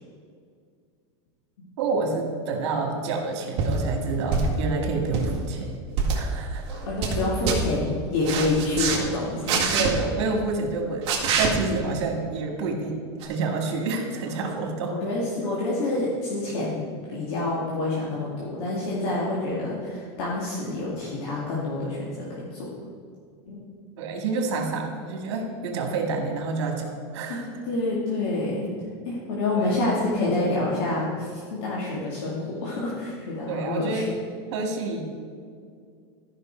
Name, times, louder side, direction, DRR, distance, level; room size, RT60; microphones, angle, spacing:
voice 1, 1.8-5.7 6.1-6.7 9.7-14.9 24.0-27.5 29.5-29.7 33.5-34.1 34.5-35.0, right 3 dB, 70° right, 2 dB, 2.1 m, -28 dB
sound 1, 3.6-3.8 4.3-4.7 5.0-5.3 5.9-6.2 6.7-7.2 7.5-7.6 8.2-9.0 9.5-9.9 11.1-11.5 13.2-13.3, right 5 dB, 40° right, 1.9 m, -24 dB
voice 2, 6.8-9.9 15.0-22.7 23.5-23.6 27.3-28.7 29.1-34.1, left 2 dB, 60° left, -6 dB, 2.1 m, -27 dB
13.5 x 5.8 x 4.5 m, 2.2 s
supercardioid pair, 160°, 15 cm